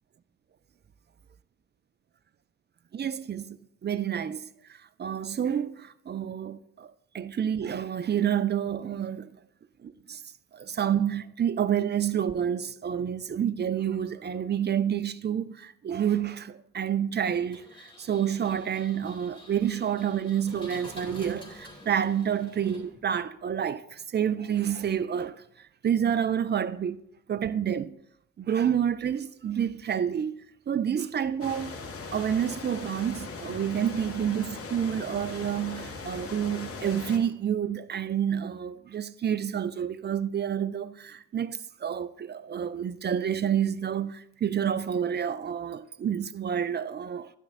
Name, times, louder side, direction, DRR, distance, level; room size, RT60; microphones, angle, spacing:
voice 1, 2.9-4.5 5.0-9.4 9.8-10.2 10.5-25.4 25.8-27.0 27.3-28.0 28.4-30.4 30.7-31.7 32.1-47.3, right 9 dB, 30° right, 0.5 m, -29 dB
Engine, 17.5-23.2, left 1 dB, 15° left, 3.1 m, -48 dB
sound 1, 31.4-37.2, left 4 dB, 40° left, 1.7 m, -39 dB
10.5 x 9.9 x 2.6 m
hypercardioid pair, 45°, 36 cm